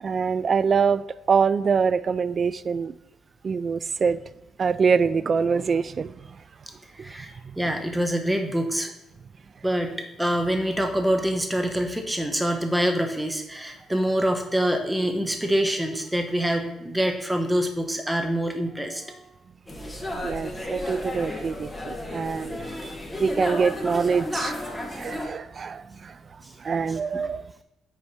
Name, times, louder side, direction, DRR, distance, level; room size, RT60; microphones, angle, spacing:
voice 1, 0.0-2.9 3.4-4.2 4.6-6.1 7.4-7.5 20.2-22.6 23.2-24.5 24.9-26.2 26.6-27.4, right 5 dB, 45° right, 16 dB, 0.3 m, -24 dB
voice 2, 6.9-8.9 9.6-19.3 22.6-23.0 26.4-26.5 27.1-27.3, equal, 10° right, 5 dB, 1.1 m, -26 dB
sound 1, 19.7-25.3, left 1 dB, 5° left, 1.6 m, -33 dB
8.1 x 3.4 x 5.7 m, 0.91 s
cardioid pair, 90°, 0 cm